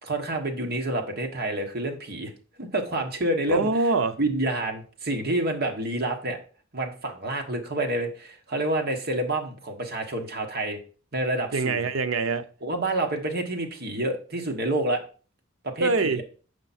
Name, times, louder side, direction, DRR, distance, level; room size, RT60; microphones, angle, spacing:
voice 1, 0.0-2.3 2.6-3.7 4.2-6.4 6.7-10.8 11.1-11.9 12.6-15.0 15.6-16.2, right 1 dB, 50° right, 1.3 m, -28 dB
voice 2, 3.5-4.2 11.5-12.5 15.8-16.2, right 3 dB, 80° right, 0.7 m, -24 dB
7.1 x 5.2 x 4.2 m
head